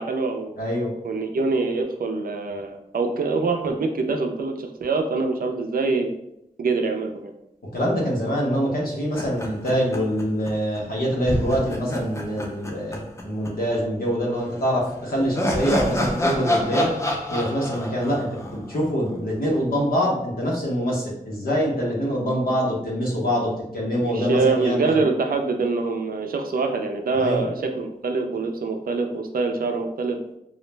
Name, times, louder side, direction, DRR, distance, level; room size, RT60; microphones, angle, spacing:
voice 1, 0.0-0.5 1.0-6.1 6.6-7.3 24.0-30.2, right 3 dB, 80° right, 4 dB, 0.4 m, -24 dB
voice 2, 0.6-0.9 7.7-16.9 17.3-25.0 27.1-27.5, equal, 85° left, -3 dB, 0.8 m, -25 dB
sound 1, 9.1-10.5 10.8-10.9 11.2-13.5 13.7-13.8 14.8-19.2, left 1 dB, 20° left, 0.4 m, -27 dB
2.4 x 2.0 x 3.2 m, 0.80 s
wide cardioid pair, 75°, 15 cm